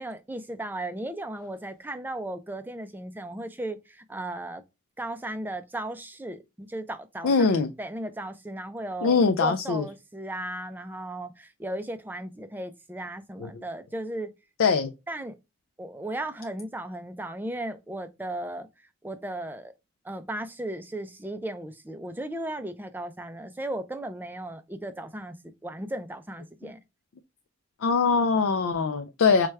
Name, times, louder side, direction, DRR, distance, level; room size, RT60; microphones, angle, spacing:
voice 1, 0.0-4.6 5.0-14.3 15.1-15.3 15.8-18.7 19.0-19.7 20.0-25.4 25.6-26.8, right 1 dB, 10° right, 0.3 m, -36 dB
voice 2, 7.2-7.7 9.0-9.9 13.4-13.5 14.6-14.9 27.8-29.5, left 5 dB, 75° left, 0.4 m, -22 dB
4.7 x 2.2 x 3.1 m
head